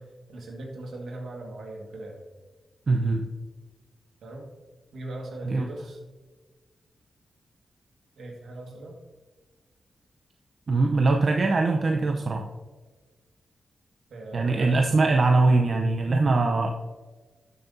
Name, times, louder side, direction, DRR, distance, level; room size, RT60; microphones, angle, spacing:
voice 1, 0.0-2.2 4.2-4.5 4.9-6.0 8.2-9.0 14.1-15.0, right 1 dB, 80° right, 1 dB, 1.7 m, -39 dB
voice 2, 2.9-3.2 5.5-5.7 10.7-12.5 14.3-16.7, right 3 dB, 60° right, 3 dB, 0.6 m, -22 dB
12.0 x 6.8 x 2.7 m, 1.3 s
cardioid pair, 50°, 0 cm